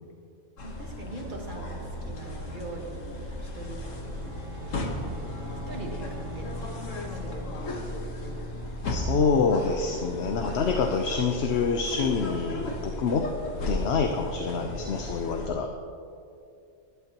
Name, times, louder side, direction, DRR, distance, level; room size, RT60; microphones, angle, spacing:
sound 1, 0.6-15.5, left 1 dB, 85° left, 1.7 m, -35 dB
voice 1, 0.6-5.2 5.7-6.8 7.1-8.4, right 2 dB, 40° right, 0 dB, 1.8 m, -42 dB
Bowed string instrument, 3.8-7.7, right 4 dB, 80° right, 1.3 m, -45 dB
voice 2, 8.9-13.3 13.7-15.7, left 5 dB, 60° left, 3 dB, 1.0 m, -26 dB
19.0 x 12.0 x 3.0 m, 2.5 s
omnidirectional pair, 1.3 m